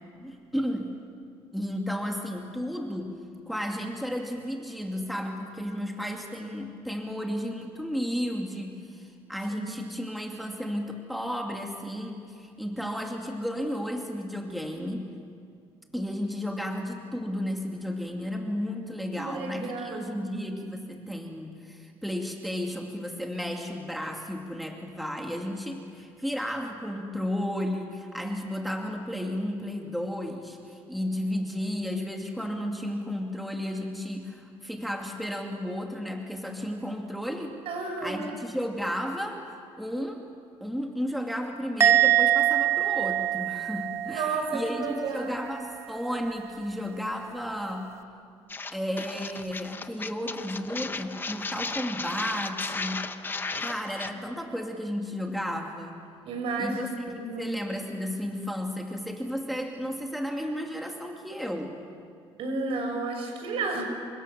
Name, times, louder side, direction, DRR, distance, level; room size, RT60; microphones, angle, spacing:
voice 1, 0.2-1.0 1.5-3.2 3.5-15.1 15.9-37.6 38.0-40.2 40.6-47.9 48.7-53.1 53.6-56.0 56.6-56.9 57.2-61.8, equal, ahead, 1 dB, 2.3 m, -33 dB
voice 2, 19.1-20.5 37.6-38.4 44.1-45.5 53.5-53.6 56.2-57.5 62.4-63.8, right 3 dB, 65° right, 3 dB, 6.6 m, -32 dB
Musical instrument, 41.8-45.2 45.5-45.9, right 12 dB, 25° right, 0.9 m, -24 dB
sound 1, 48.5-54.1, left 4 dB, 20° left, 1.0 m, -35 dB
28.0 x 25.0 x 6.8 m, 2.3 s
cardioid pair, 130°, 10 cm